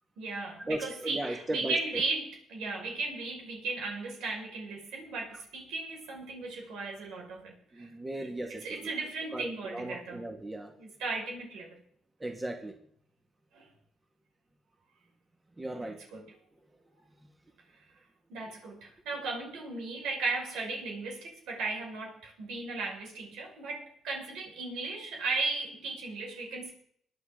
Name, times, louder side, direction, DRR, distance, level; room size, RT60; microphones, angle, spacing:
voice 1, 0.2-7.9 8.2-10.2 10.8-11.8 13.5-13.6 15.8-16.3 18.3-26.7, right 3 dB, 90° right, -1 dB, 5.9 m, -36 dB
voice 2, 0.7-2.0 7.7-8.9 9.3-10.7 12.2-12.7 15.6-16.0, right 1 dB, 20° right, 3 dB, 2.2 m, -37 dB
22.5 x 9.8 x 4.0 m, 0.65 s
cardioid pair, 90°, 0 cm